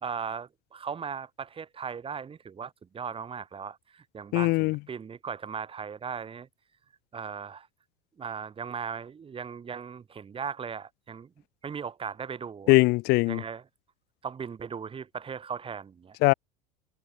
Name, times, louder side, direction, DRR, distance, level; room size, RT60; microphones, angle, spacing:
voice 1, 0.0-6.5 7.1-7.7 8.2-11.3 11.6-12.7 13.3-13.6 14.2-16.3, right 6 dB, 25° right, 3.3 m, -38 dB
voice 2, 4.3-4.8 12.7-13.4 16.2-16.3, left 23 dB, 50° left, 0.9 m, -21 dB
hypercardioid pair, 80°, 21 cm